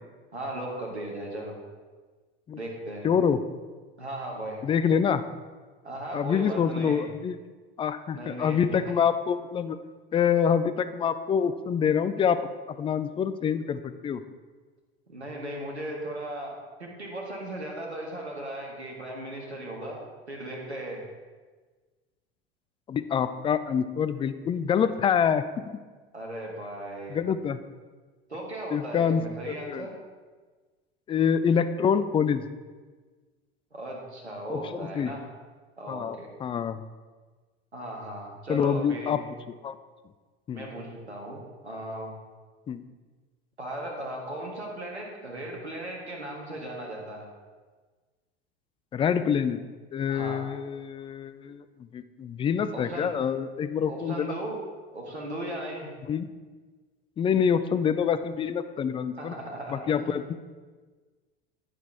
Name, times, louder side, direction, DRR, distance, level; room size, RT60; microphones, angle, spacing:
voice 1, 0.3-1.6 2.5-3.1 4.0-4.7 5.8-7.1 8.1-8.8 15.1-21.0 26.1-27.2 28.3-29.9 33.7-35.3 35.8-36.3 37.7-39.3 40.5-42.1 43.6-47.3 50.1-50.4 52.7-53.1 53.9-54.6 54.9-55.9 59.2-60.2, right 1 dB, 85° right, -1 dB, 1.7 m, -37 dB
voice 2, 3.0-3.4 4.6-5.2 6.1-7.4 7.8-9.8 10.1-12.4 12.7-14.2 22.9-25.4 27.1-27.6 28.7-29.9 31.1-32.4 34.5-35.1 35.9-36.9 38.5-39.2 39.5-39.8 40.5-40.7 42.7-42.8 48.9-49.6 49.9-51.6 51.9-54.3 56.1-56.3 57.2-59.3 59.7-60.4, left 7 dB, 15° left, 12 dB, 0.4 m, -26 dB
9.6 x 9.3 x 3.5 m, 1.4 s
figure-of-eight pair, 75°, 32 cm